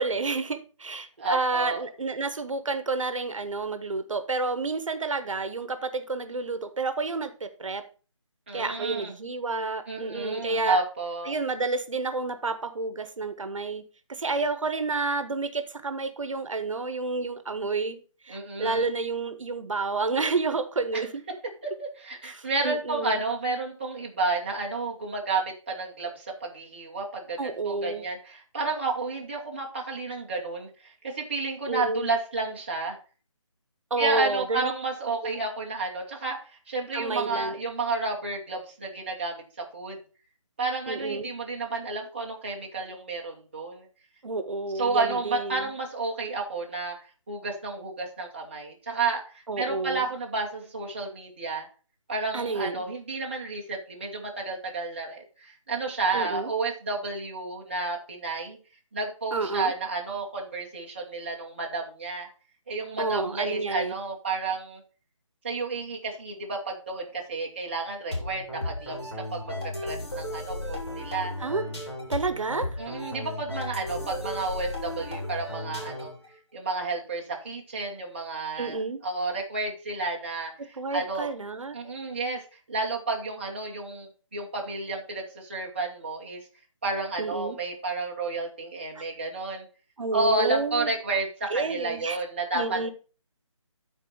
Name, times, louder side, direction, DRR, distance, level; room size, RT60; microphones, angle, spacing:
voice 1, 0.0-7.8 8.5-10.8 11.3-13.8 14.1-21.2 22.2-23.2 27.4-28.0 31.7-32.1 33.9-34.7 35.2-35.4 36.9-37.6 40.9-41.3 44.2-45.7 49.5-50.1 52.3-52.9 56.1-56.5 59.3-59.7 63.0-64.0 71.4-71.7 72.1-72.8 78.6-79.0 80.6-81.8 87.2-87.6 88.9-89.0 90.0-90.9 91.5-92.2 92.5-92.9, right 3 dB, 75° right, 1.1 m, -30 dB
voice 2, 1.2-1.9 8.5-9.1 9.9-11.3 18.3-18.9 20.9-21.0 21.6-33.0 34.0-40.0 40.6-43.9 44.7-47.0 47.3-51.7 52.1-58.6 58.9-62.3 62.7-64.8 65.4-71.3 72.8-76.1 76.5-78.8 79.0-80.5 80.9-81.3 81.7-86.4 86.8-89.7 90.1-92.9, right 3 dB, 20° right, 1.0 m, -31 dB
sound 1, 68.1-76.3, left 1 dB, 50° left, 3.8 m, -35 dB
9.4 x 4.4 x 4.6 m
hypercardioid pair, 180°, 17 cm